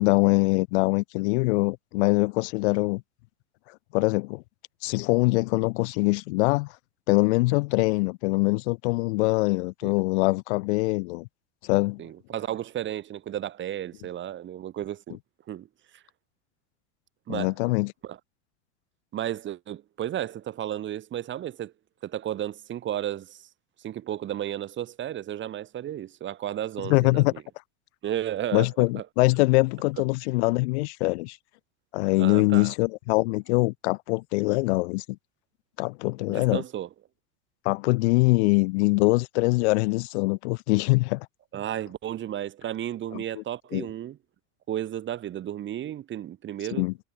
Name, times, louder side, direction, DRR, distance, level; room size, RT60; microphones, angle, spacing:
voice 1, 0.0-3.0 3.9-4.4 4.8-6.7 7.1-11.3 11.6-12.0 17.3-17.9 26.9-27.3 28.5-31.4 31.9-35.2 35.8-36.6 37.6-41.3 43.1-43.4 43.7-43.9 46.7-46.9, left 25 dB, 65° left, 0.6 m, -23 dB
voice 2, 12.0-15.2 15.5-15.7 15.9-16.0 17.3-17.5 18.0-18.2 19.1-21.7 22.0-23.5 23.8-27.4 28.0-29.1 32.2-32.7 36.3-36.9 41.5-44.2 44.7-46.9, right 11 dB, 30° right, 1.8 m, -33 dB
supercardioid pair, 120°, 36 cm